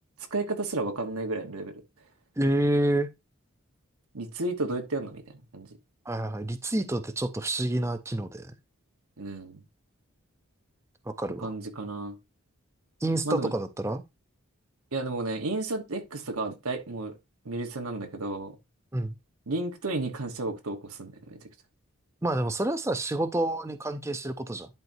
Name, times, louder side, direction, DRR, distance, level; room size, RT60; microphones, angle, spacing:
voice 1, 0.3-1.7 4.1-5.7 9.2-9.6 11.4-12.2 13.2-13.5 14.9-17.1 17.4-18.5 19.5-21.4, right 2 dB, 90° right, 1.2 m, -32 dB
voice 2, 2.4-3.1 6.1-8.5 11.1-11.5 13.0-14.0 18.9-19.1 22.2-24.7, right 1 dB, 10° right, 0.5 m, -28 dB
11.0 x 4.5 x 2.7 m
head